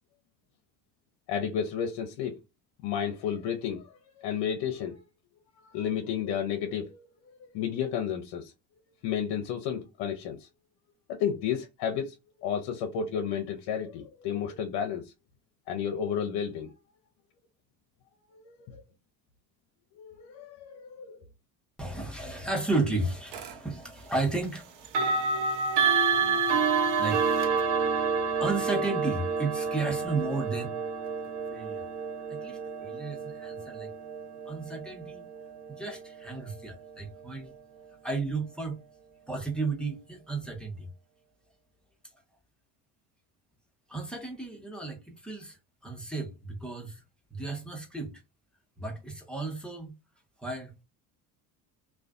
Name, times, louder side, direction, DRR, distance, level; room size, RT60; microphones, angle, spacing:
voice 1, 1.3-2.4 2.8-3.9 4.2-5.0 5.7-7.1 7.5-8.5 9.0-10.5 11.1-15.1 15.7-16.7 18.3-18.8 20.0-21.2, left 8 dB, 65° left, 0.6 m, -32 dB
voice 2, 21.8-24.9 25.3-25.4 26.0-26.5 27.0-27.4 28.4-30.8 31.5-31.8 32.3-33.9 34.5-35.3 35.8-37.5 38.0-38.8 39.3-40.9 43.9-45.6 45.8-47.0 47.3-48.2 48.8-49.9 50.4-50.8, right 3 dB, ahead, 0.9 m, -33 dB
sound 1, 23.3-23.5 24.8-35.7, right 5 dB, 60° right, 0.7 m, -29 dB
2.4 x 2.3 x 2.3 m
hypercardioid pair, 75°, 47 cm